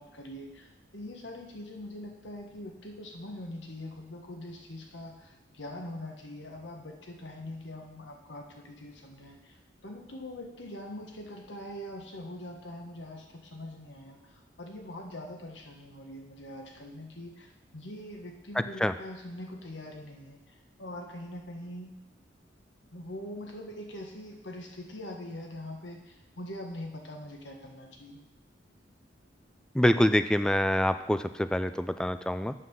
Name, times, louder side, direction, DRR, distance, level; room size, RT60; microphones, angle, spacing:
voice 1, 0.0-21.9 22.9-28.2, left 1 dB, 75° left, 2 dB, 1.4 m, -43 dB
voice 2, 18.6-18.9 29.7-32.5, equal, 5° left, 10 dB, 0.3 m, -26 dB
8.2 x 5.6 x 6.3 m, 0.94 s
head